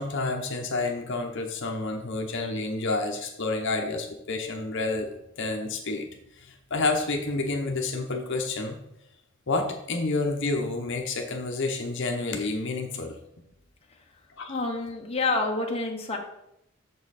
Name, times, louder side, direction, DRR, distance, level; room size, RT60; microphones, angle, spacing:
voice 1, 0.0-6.1 6.5-8.8 9.5-13.2 14.4-14.6, left 3 dB, 60° left, 2 dB, 0.9 m, -29 dB
voice 2, 14.5-16.2, left 3 dB, 30° left, 1 dB, 1.0 m, -28 dB
6.9 x 5.5 x 4.1 m, 0.83 s
head